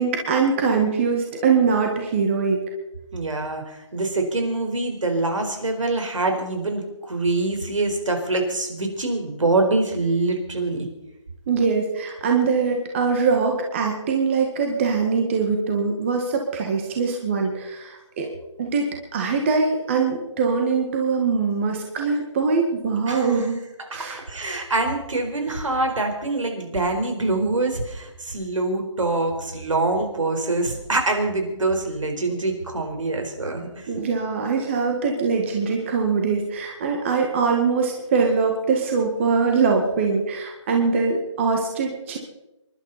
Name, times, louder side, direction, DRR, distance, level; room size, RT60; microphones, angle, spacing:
voice 1, 0.0-2.6 11.5-18.3 18.6-23.6 23.9-24.4 33.9-42.2, right 5 dB, 25° right, 2 dB, 1.9 m, -22 dB
voice 2, 3.1-10.9 23.1-23.3 23.9-33.9, right 2 dB, 80° right, 4 dB, 4.6 m, -25 dB
27.5 x 12.0 x 4.2 m, 0.95 s
hypercardioid pair, 165°, 16 cm